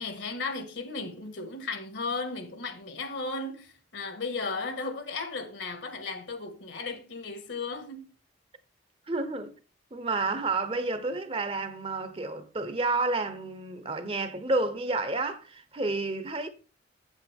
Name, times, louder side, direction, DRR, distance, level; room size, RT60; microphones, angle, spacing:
voice 1, 0.0-8.1, left 3 dB, 70° left, 1.9 m, -35 dB
voice 2, 9.1-9.6 9.9-16.5, right 3 dB, 30° right, 0.8 m, -30 dB
8.6 x 8.3 x 3.5 m
head